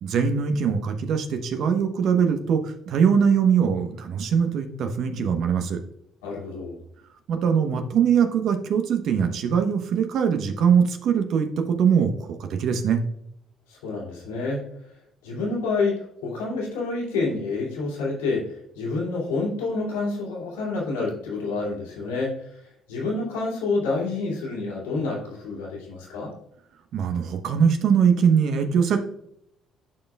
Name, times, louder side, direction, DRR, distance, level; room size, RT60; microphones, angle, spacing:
voice 1, 0.0-5.8 7.3-13.0 26.9-29.0, right 7 dB, 65° right, 6 dB, 1.0 m, -22 dB
voice 2, 6.2-6.8 13.7-14.7 15.2-26.3, left 3 dB, 85° left, -5 dB, 2.5 m, -28 dB
11.5 x 4.6 x 2.3 m, 0.74 s
hypercardioid pair, 55°, 0 cm